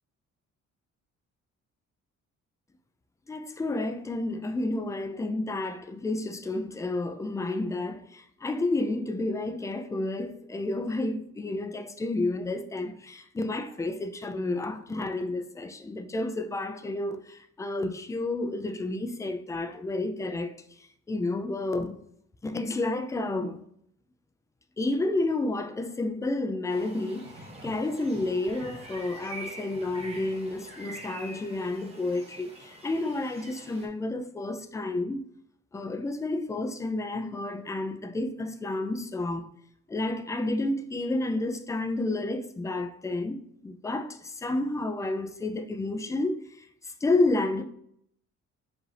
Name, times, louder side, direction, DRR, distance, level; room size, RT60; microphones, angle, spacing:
voice 1, 3.3-22.0 22.4-23.6 24.8-35.2 35.7-39.5 39.9-46.4 46.8-47.6, left 2 dB, 10° left, 0.3 m, -30 dB
sound 1, 26.7-33.9, right 1 dB, 20° right, 1.2 m, -45 dB
4.9 x 2.5 x 3.3 m
cardioid pair, 90°, 30 cm